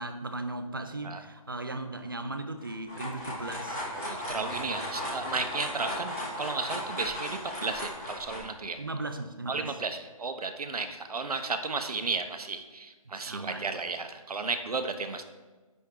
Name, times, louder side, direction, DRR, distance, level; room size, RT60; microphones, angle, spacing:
voice 1, 0.0-3.9 8.8-9.8 13.2-13.7, right 2 dB, 35° right, 8 dB, 0.5 m, -37 dB
sound 1, 2.6-8.4, left 1 dB, 5° left, 0.6 m, -36 dB
voice 2, 3.9-8.8 9.5-15.2, right 4 dB, 80° right, 8 dB, 0.9 m, -34 dB
10.0 x 3.6 x 4.6 m, 1.3 s
hypercardioid pair, 180°, 19 cm